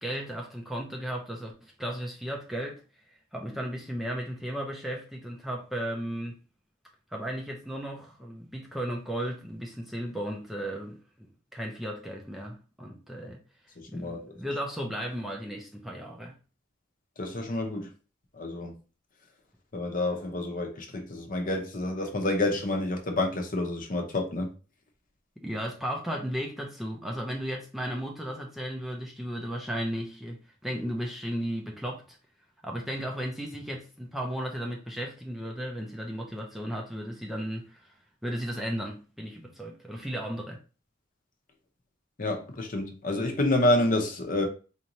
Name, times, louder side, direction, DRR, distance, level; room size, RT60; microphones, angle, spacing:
voice 1, 0.0-2.8 3.1-6.4 7.1-13.4 13.9-16.4 25.4-32.2 32.6-37.9 38.2-40.6, equal, ahead, 0.5 m, -35 dB
voice 2, 13.8-14.3 17.2-17.9 18.3-18.8 19.7-24.5 42.2-44.4, left 2 dB, 45° left, 0.8 m, -28 dB
4.3 x 2.6 x 3.0 m
head